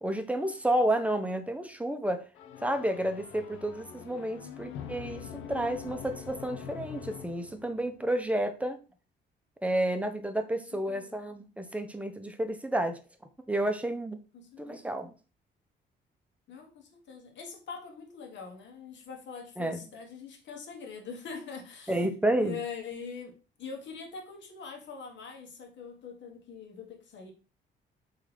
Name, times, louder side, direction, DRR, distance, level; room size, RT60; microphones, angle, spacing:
voice 1, 0.0-2.2 2.6-8.8 9.6-13.0 13.5-14.2 14.6-15.1 19.6-19.8 21.9-22.6, right 1 dB, 5° right, 0.6 m, -30 dB
sound 1, 2.3-7.9, left 8 dB, 85° left, 0.5 m, -44 dB
voice 2, 4.4-5.0 10.5-11.2 14.3-15.0 16.5-22.0 22.4-27.3, left 5 dB, 65° left, 1.1 m, -43 dB
3.7 x 3.2 x 3.2 m
cardioid pair, 90°, 20 cm